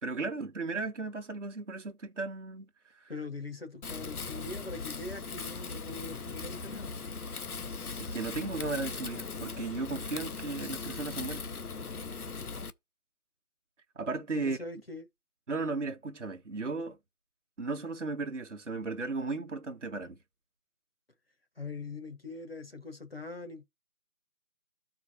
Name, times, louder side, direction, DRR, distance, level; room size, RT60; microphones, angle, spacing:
voice 1, 0.0-3.1 8.0-11.4 14.0-14.6 15.5-17.0 17.6-20.2, right 3 dB, 50° right, 1.0 m, -35 dB
voice 2, 3.1-6.9 14.4-15.1 21.6-23.6, left 3 dB, 40° left, 1.1 m, -42 dB
Wind, 3.8-12.7, left 4 dB, 75° left, 0.9 m, -39 dB
13.5 x 4.7 x 2.9 m
figure-of-eight pair, 170°, 45 cm